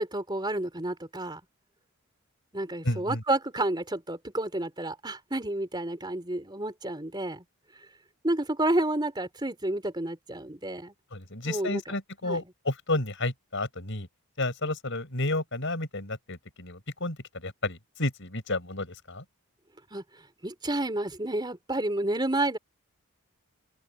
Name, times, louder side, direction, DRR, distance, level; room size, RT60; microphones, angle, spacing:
voice 1, 0.0-1.4 2.5-7.4 8.2-10.9 11.4-11.8 12.2-12.4 19.9-20.0 20.4-22.6, right 1 dB, 20° right, 3.8 m, -30 dB
voice 2, 2.8-3.2 11.1-14.1 14.4-19.2, left 2 dB, 55° left, 7.6 m, -31 dB
head